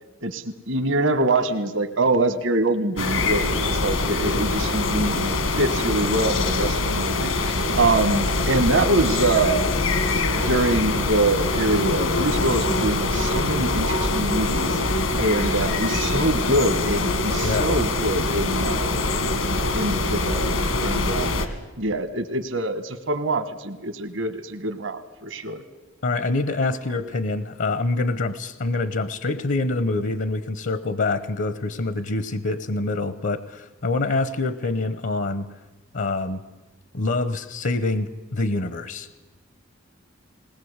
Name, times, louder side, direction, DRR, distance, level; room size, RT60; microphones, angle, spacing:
voice 1, 0.2-9.7 10.4-14.8 15.2-18.9 19.7-21.5 21.8-25.6, right 2 dB, 65° right, 9 dB, 1.3 m, -24 dB
sound 1, 3.0-21.5, left 2 dB, 85° left, 2.0 m, -23 dB
voice 2, 26.0-35.5 35.9-36.4 36.9-39.1, left 2 dB, 65° left, 14 dB, 0.9 m, -25 dB
20.5 x 19.0 x 8.1 m, 1.2 s
head